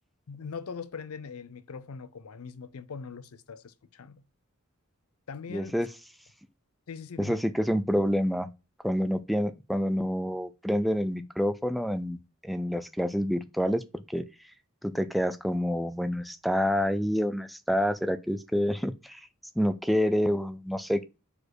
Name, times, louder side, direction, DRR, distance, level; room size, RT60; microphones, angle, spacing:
voice 1, 0.3-4.2 5.3-5.8 6.9-7.4, left 5 dB, 85° left, 0.6 m, -41 dB
voice 2, 5.5-5.9 7.2-8.5 8.8-13.8 14.1-14.2 14.8-19.2 19.6-21.0, equal, ahead, 0.4 m, -27 dB
4.9 x 4.2 x 4.7 m
head